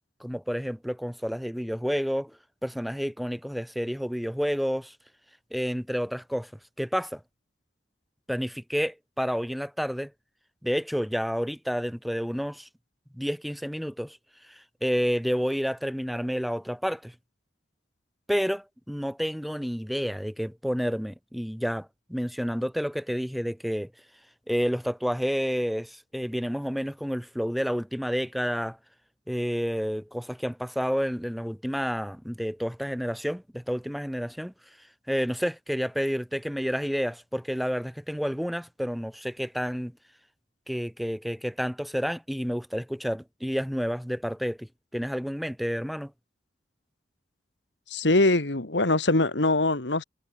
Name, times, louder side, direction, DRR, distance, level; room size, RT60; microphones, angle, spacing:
voice 1, 0.2-2.3 2.6-4.9 5.5-6.5 6.8-7.2 8.3-10.1 10.6-12.7 13.1-14.2 14.8-17.1 18.3-23.9 24.5-28.8 29.3-34.5 35.1-39.9 40.7-44.7 44.9-46.1, equal, ahead, 0.9 m, -30 dB
voice 2, 47.9-50.0, left 2 dB, 75° left, 2.3 m, -23 dB
head